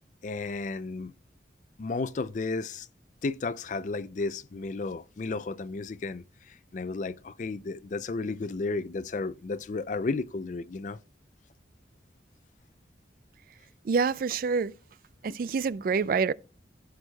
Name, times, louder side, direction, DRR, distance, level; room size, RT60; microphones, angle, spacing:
voice 1, 0.2-1.1 1.8-2.9 3.2-6.2 6.7-11.0, left 3 dB, 45° left, 0.4 m, -33 dB
voice 2, 13.8-14.8 15.2-16.3, right 5 dB, 50° right, 0.3 m, -26 dB
16.0 x 6.2 x 2.3 m
head